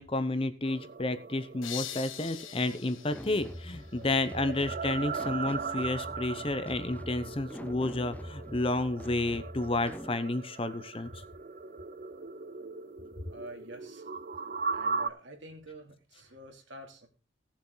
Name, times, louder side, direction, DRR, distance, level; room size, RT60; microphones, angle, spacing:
voice 1, 0.0-11.1, left 2 dB, 25° left, 11 dB, 0.8 m, -31 dB
sound 1, 0.6-15.1, right 5 dB, 45° right, 0.5 m, -39 dB
sound 2, 1.6-4.4, left 11 dB, 85° left, 1.5 m, -43 dB
sound 3, 3.1-10.2, left 1 dB, 5° left, 0.5 m, -44 dB
voice 2, 13.3-14.1 14.7-17.1, right 1 dB, 65° right, 3 dB, 2.9 m, -47 dB
18.0 x 7.3 x 3.9 m, 0.34 s
head